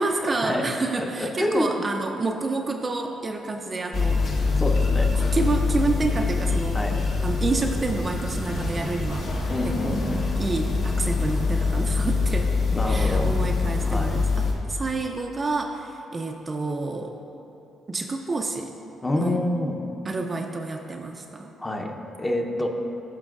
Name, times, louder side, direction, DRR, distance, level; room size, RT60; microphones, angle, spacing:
voice 1, 0.0-4.5 5.3-6.8 7.2-9.3 9.8-10.0 10.4-12.5 12.9-17.1 17.9-18.7 19.2-19.4 20.1-21.5, right 3 dB, 30° right, 3 dB, 0.4 m, -29 dB
voice 2, 1.0-1.8 4.6-5.1 6.7-7.0 9.5-10.3 12.7-13.4 13.9-14.2 19.0-19.8 21.6-22.7, left 1 dB, 15° left, 3 dB, 0.7 m, -27 dB
sound 1, 3.9-14.5, left 4 dB, 60° left, 1.2 m, -24 dB
14.0 x 5.3 x 2.4 m, 2.9 s
cardioid pair, 90°, 0 cm